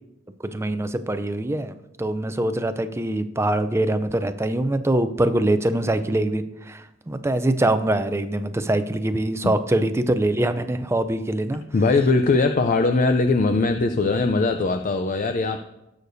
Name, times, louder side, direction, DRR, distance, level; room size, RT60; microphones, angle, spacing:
voice 1, 0.4-1.7 2.0-11.6, right 1 dB, 15° right, 11 dB, 0.4 m, -23 dB
voice 2, 11.7-15.6, left 3 dB, 45° left, 7 dB, 0.4 m, -20 dB
19.0 x 6.5 x 2.7 m, 0.91 s
head